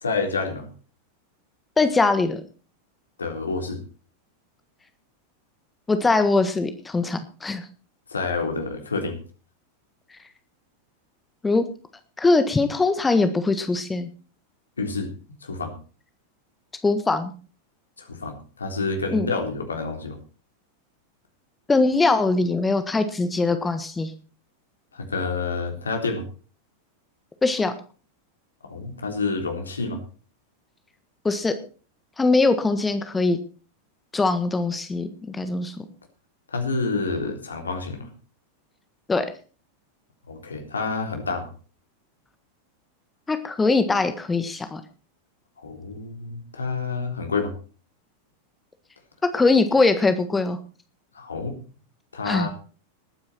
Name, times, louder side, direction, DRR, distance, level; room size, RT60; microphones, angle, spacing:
voice 1, 0.0-0.7 3.2-3.8 8.1-9.2 14.8-15.1 15.4-15.7 18.0-20.2 24.9-26.3 28.6-30.0 36.5-38.1 40.3-41.5 45.6-47.5 51.1-51.6 52.1-52.5, left 4 dB, 75° left, 4 dB, 3.6 m, -28 dB
voice 2, 1.8-2.4 5.9-7.7 11.4-11.6 12.2-14.1 16.8-17.3 19.1-19.3 21.7-24.1 27.4-27.7 31.2-31.5 32.2-33.4 34.1-35.8 39.1-39.3 43.3-44.8 49.2-50.6 52.2-52.5, left 3 dB, 10° left, 10 dB, 1.5 m, -21 dB
19.5 x 9.5 x 4.4 m, 0.37 s
figure-of-eight pair, 90°, 0 cm